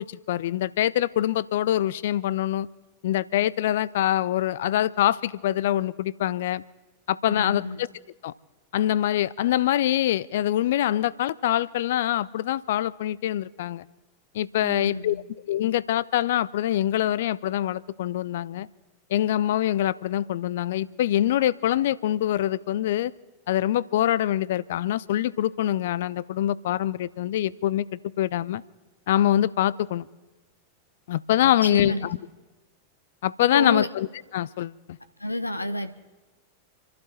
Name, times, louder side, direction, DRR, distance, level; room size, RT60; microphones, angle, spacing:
voice 1, 0.0-2.7 3.0-6.6 7.1-7.9 8.2-8.3 8.7-13.9 14.3-15.2 15.5-18.7 19.1-23.1 23.5-28.6 29.1-30.0 31.1-32.2 33.2-34.1 34.3-35.0, left 12 dB, 55° left, 21 dB, 0.4 m, -24 dB
voice 2, 7.2-7.8 14.6-15.2 31.4-32.1 33.4-33.9 35.2-35.9, left 1 dB, 85° left, 10 dB, 0.8 m, -29 dB
29.0 x 12.0 x 4.2 m, 1.2 s
figure-of-eight pair, 90°, 0 cm